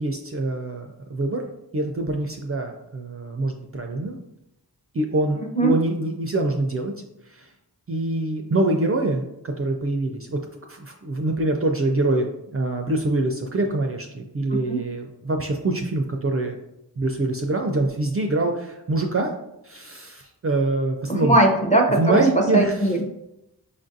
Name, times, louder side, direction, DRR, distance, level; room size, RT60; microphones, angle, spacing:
voice 1, 0.0-1.4 1.7-4.2 4.9-6.9 7.3-7.5 7.9-10.4 10.7-12.3 12.5-16.6 17.0-19.3 19.6-21.4 22.0-22.7, right 2 dB, 35° right, 3 dB, 0.4 m, -24 dB
voice 2, 21.1-22.2 22.5-23.1, right 2 dB, 20° left, 1 dB, 0.6 m, -19 dB
5.1 x 2.5 x 2.6 m, 0.85 s
wide cardioid pair, 55°, 41 cm